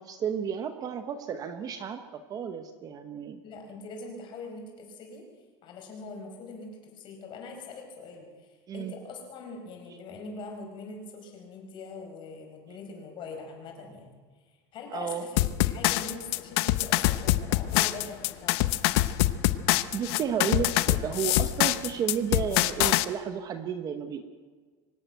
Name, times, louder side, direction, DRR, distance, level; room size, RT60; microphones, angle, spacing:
voice 1, 0.0-3.4 8.7-9.0 14.9-15.3 19.9-24.2, right 7 dB, 25° right, 9 dB, 0.9 m, -32 dB
voice 2, 3.4-5.3 5.6-14.2 14.4-18.6, left 3 dB, 35° left, 2 dB, 4.8 m, -42 dB
sound 1, 15.4-23.1, left 17 dB, 65° left, 0.8 m, -25 dB
24.5 x 12.0 x 9.3 m, 1.5 s
cardioid pair, 175°, 14 cm